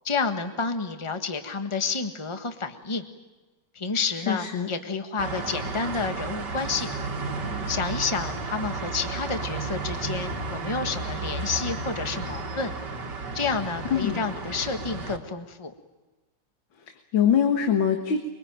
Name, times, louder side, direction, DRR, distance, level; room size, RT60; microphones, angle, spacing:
voice 1, 0.0-3.1 3.7-7.0 7.7-12.7 13.3-15.7, left 4 dB, 15° left, 7 dB, 1.5 m, -30 dB
voice 2, 4.3-4.7 13.8-14.2 16.8-18.3, left 8 dB, 85° left, 5 dB, 2.4 m, -24 dB
sound 1, 5.2-15.2, right 3 dB, 60° right, 2.7 m, -33 dB
24.0 x 24.0 x 9.1 m, 1.2 s
omnidirectional pair, 2.1 m